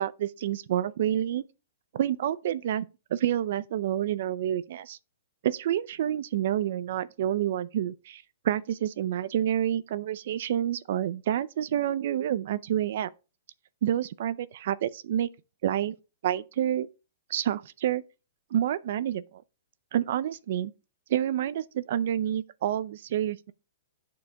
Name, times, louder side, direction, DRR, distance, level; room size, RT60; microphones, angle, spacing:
voice 1, 0.0-1.5 1.9-2.9 3.1-5.0 5.4-13.1 13.8-15.3 15.6-15.9 16.2-16.9 17.3-18.0 18.5-19.4 19.9-20.7 21.1-23.5, right 11 dB, 55° right, 0.5 m, -28 dB
8.6 x 4.7 x 5.2 m
hypercardioid pair, 155°, 0 cm